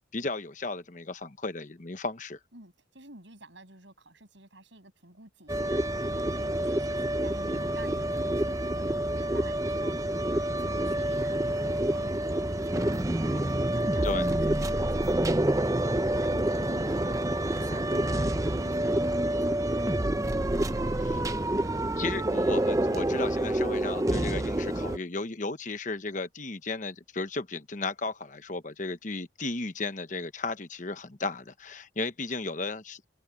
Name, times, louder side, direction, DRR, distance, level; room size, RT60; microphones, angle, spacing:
voice 1, 0.1-2.4 14.0-14.3 21.0-21.2 22.0-33.1, left 3 dB, 40° left, 1.0 m, -35 dB
voice 2, 2.5-15.9 16.2-20.2, right 2 dB, 65° right, 7.8 m, -50 dB
sound 1, 5.5-25.0, right 1 dB, 15° right, 0.6 m, -28 dB
head